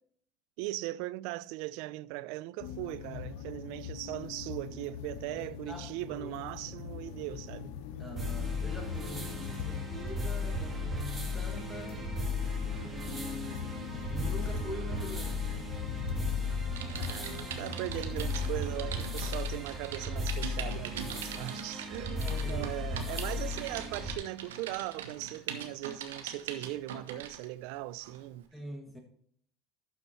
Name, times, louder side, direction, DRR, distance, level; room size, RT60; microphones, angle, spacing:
voice 1, 0.6-7.7 12.6-12.9 17.0-28.5, right 17 dB, 65° right, 0.4 m, -39 dB
sound 1, 2.6-18.7, left 9 dB, 70° left, 0.9 m, -42 dB
voice 2, 5.3-6.3 8.0-12.0 12.8-13.8 14.1-15.7 22.2-22.8 28.5-29.0, equal, ahead, 1.5 m, -44 dB
sound 2, 8.2-24.2, left 2 dB, 20° right, 1.9 m, -36 dB
Typing, 16.7-27.5 28.0-28.2, right 7 dB, 85° right, 1.0 m, -42 dB
12.0 x 4.5 x 4.3 m
hypercardioid pair, 90°, 0 cm